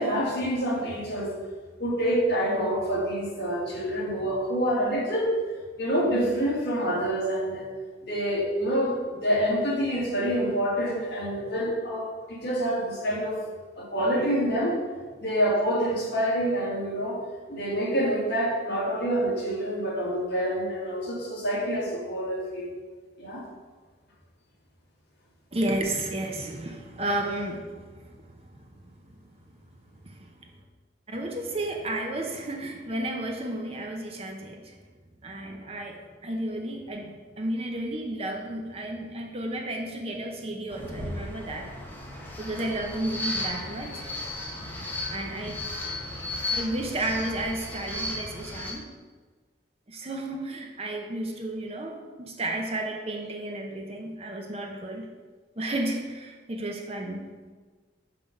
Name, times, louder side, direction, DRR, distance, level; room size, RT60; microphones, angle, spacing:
voice 1, 0.0-1.3 1.8-5.3 5.8-7.7 8.0-13.4 13.8-14.8 15.2-17.2 17.5-22.7 23.2-23.4, equal, 60° left, -5 dB, 2.1 m, -27 dB
voice 2, 25.5-29.6 30.0-30.6 31.1-34.8 35.2-41.7 42.4-44.1 45.1-45.6 46.5-48.9 49.9-55.1 55.6-57.5, right 1 dB, 30° right, 2 dB, 0.8 m, -33 dB
sound 1, 40.7-48.7, left 1 dB, 10° left, 1.0 m, -35 dB
5.9 x 5.8 x 5.2 m, 1.4 s
head